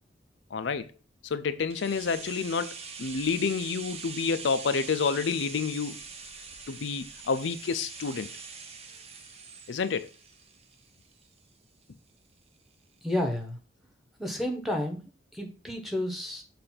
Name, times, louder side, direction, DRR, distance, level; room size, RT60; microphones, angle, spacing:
voice 1, 0.5-0.9 1.2-6.0 6.7-8.3 9.7-10.1, left 5 dB, 85° left, 0.5 m, -29 dB
sound 1, 1.7-11.5 11.8-11.9, right 5 dB, 35° right, 0.7 m, -43 dB
voice 2, 13.0-13.6 14.2-16.4, left 1 dB, ahead, 1.1 m, -31 dB
6.7 x 2.6 x 5.6 m
head